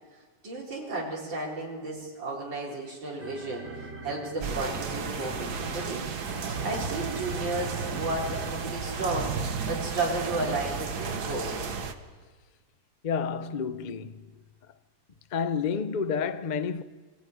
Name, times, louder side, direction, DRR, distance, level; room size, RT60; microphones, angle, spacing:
voice 1, 0.4-6.0 6.6-9.3 9.7-11.8, right 2 dB, 75° right, 4.8 m, -33 dB
sound 1, 2.6-9.1, right 2 dB, 35° right, 2.9 m, -43 dB
sound 2, 4.4-11.9, right 5 dB, 55° right, 1.8 m, -33 dB
voice 2, 13.0-14.4 15.3-16.8, left 6 dB, 75° left, 0.4 m, -30 dB
26.0 x 18.5 x 9.4 m
omnidirectional pair, 2.1 m